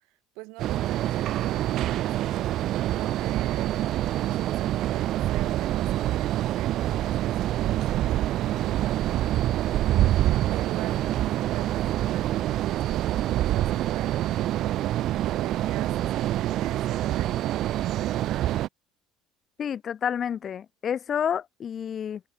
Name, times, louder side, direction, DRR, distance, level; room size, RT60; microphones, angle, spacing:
voice 1, 0.0-2.5 2.9-3.8 4.2-9.1 10.5-14.8 15.2-17.8, right 25 dB, 75° right, 4.7 m, -43 dB
sound 1, 0.6-18.7, right 13 dB, 55° right, 0.5 m, -26 dB
voice 2, 19.6-22.2, left 8 dB, 35° left, 0.7 m, -29 dB
cardioid pair, 120°, 0 cm